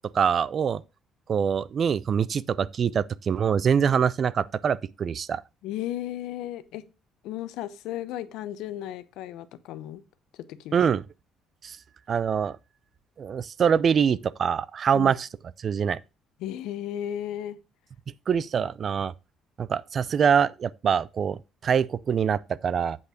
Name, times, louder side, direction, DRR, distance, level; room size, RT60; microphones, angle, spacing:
voice 1, 0.1-0.8 1.3-5.4 10.7-11.0 11.6-11.8 12.1-12.6 13.2-15.3 15.6-16.0 18.3-19.1 19.6-21.4 21.6-23.0, right 7 dB, 40° right, 0.4 m, -24 dB
voice 2, 5.6-6.9 7.2-10.0 10.3-10.8 14.9-15.2 16.4-17.6, left 12 dB, 85° left, 0.8 m, -35 dB
8.2 x 5.4 x 5.0 m
cardioid pair, 135°, 0 cm